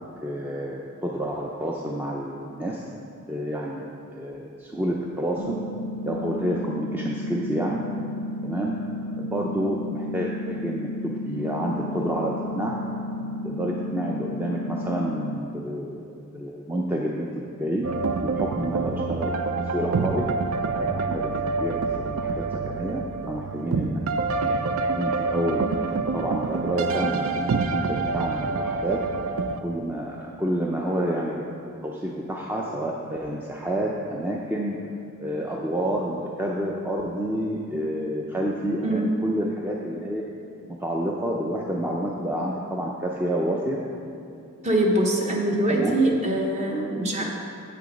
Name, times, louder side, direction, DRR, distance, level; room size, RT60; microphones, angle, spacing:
voice 1, 0.2-2.8 3.3-3.8 4.1-5.6 6.0-7.8 8.4-8.7 9.2-12.7 13.2-16.0 16.3-17.9 18.2-19.4 19.7-20.3 20.8-24.0 24.5-24.7 25.0-29.0 29.6-34.8 35.2-40.2 40.8-43.8 45.7-46.0, right 1 dB, 10° right, -3 dB, 0.5 m, -29 dB
sound 1, 5.4-15.4, left 1 dB, 75° left, 0.4 m, -32 dB
sound 2, 17.8-29.6, right 4 dB, 70° right, 0.4 m, -27 dB
voice 2, 44.6-47.2, right 1 dB, 30° right, 0 dB, 1.1 m, -23 dB
7.8 x 6.7 x 5.1 m, 2.6 s
head